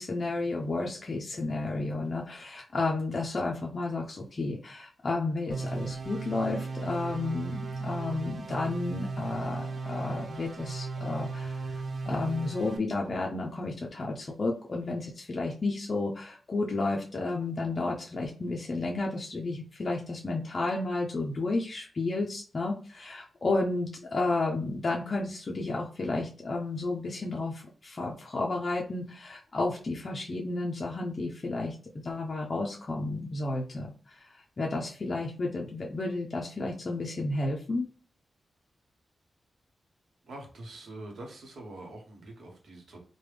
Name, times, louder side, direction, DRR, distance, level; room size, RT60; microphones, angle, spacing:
voice 1, 0.0-31.8 32.0-37.9, left 2 dB, 35° left, -1 dB, 0.4 m, -32 dB
sound 1, 5.5-12.8, right 3 dB, 50° right, 0.3 m, -36 dB
voice 2, 40.3-43.0, right 2 dB, 70° right, 1 dB, 0.9 m, -44 dB
3.3 x 2.1 x 3.2 m, 0.39 s
wide cardioid pair, 140°, 0 cm